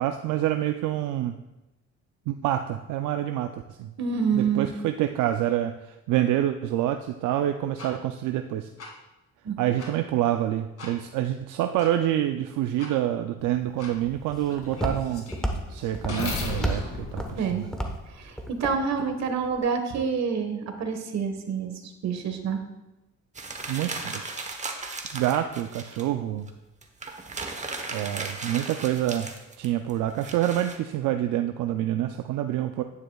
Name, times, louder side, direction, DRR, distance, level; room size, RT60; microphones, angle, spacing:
voice 1, 0.0-1.3 2.3-3.9 4.3-8.7 9.6-15.3 15.7-17.7 23.7-24.6 25.1-26.5 27.9-32.8, right 12 dB, 85° right, 6 dB, 0.5 m, -27 dB
voice 2, 4.0-4.7 9.4-9.6 17.4-17.6 18.1-22.6, right 6 dB, 60° right, 6 dB, 1.4 m, -27 dB
sound 1, 7.8-7.9 8.8-8.9 9.8-9.9 10.8-10.9 11.8-11.9 12.8-12.9 13.8-13.9 14.5-18.4, left 3 dB, 55° left, 2.2 m, -36 dB
Walk footsteps, 13.4-19.6, equal, ahead, 1.1 m, -34 dB
sound 2, 23.4-26.1 26.5-26.6 26.8-30.8, right 3 dB, 25° right, 1.1 m, -36 dB
10.0 x 9.5 x 2.3 m, 1.0 s
cardioid pair, 90°, 30 cm